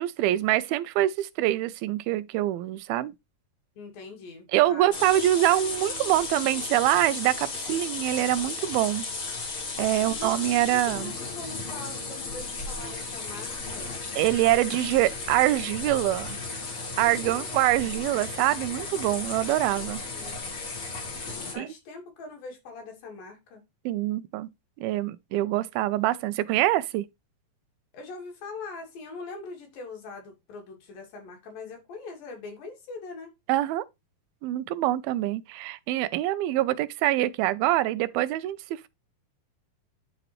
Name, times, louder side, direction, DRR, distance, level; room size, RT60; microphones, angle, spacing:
voice 1, 0.0-3.1 4.5-9.0 9.8-11.1 14.2-16.4 17.0-20.0 21.6-21.7 23.9-24.5 24.8-27.1 33.5-33.9 34.4-38.9, right 15 dB, 90° right, 2.5 m, -25 dB
voice 2, 3.8-5.0 10.0-14.0 17.0-17.7 19.9-20.3 21.5-23.6 27.9-33.3, left 3 dB, 75° left, 4.0 m, -42 dB
sound 1, 4.9-21.5, left 3 dB, 40° left, 2.5 m, -35 dB
11.0 x 3.9 x 3.0 m
omnidirectional pair, 4.2 m